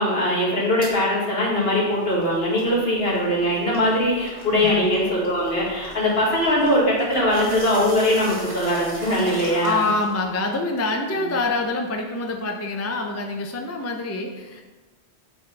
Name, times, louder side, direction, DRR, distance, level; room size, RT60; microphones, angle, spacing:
voice 1, 0.0-9.9, left 1 dB, 60° left, -6 dB, 2.1 m, -21 dB
sound 1, 0.8-0.9 1.4-10.2, equal, 75° right, 1.9 m, -40 dB
voice 2, 9.5-14.6, left 2 dB, 25° left, 2 dB, 0.3 m, -26 dB
8.6 x 4.0 x 3.3 m, 1.2 s
omnidirectional pair, 1.1 m